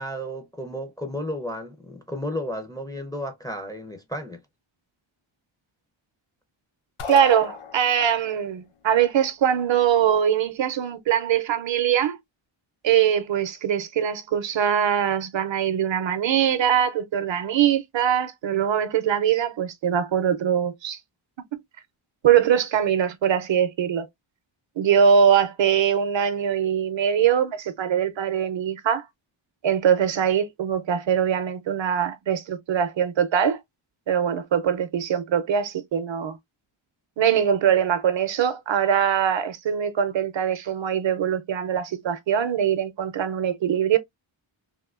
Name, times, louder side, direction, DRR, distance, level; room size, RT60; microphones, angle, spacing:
voice 1, 0.0-4.4, equal, 10° left, 0.5 m, -33 dB
sound 1, 7.0-8.3, left 6 dB, 85° left, 0.9 m, -34 dB
voice 2, 7.1-12.2 12.8-21.0 21.5-21.6 22.2-24.1 24.8-29.0 29.6-33.6 34.1-36.4 37.2-44.0, right 8 dB, 65° right, 0.6 m, -22 dB
3.5 x 2.6 x 2.4 m
wide cardioid pair, 170°, 49 cm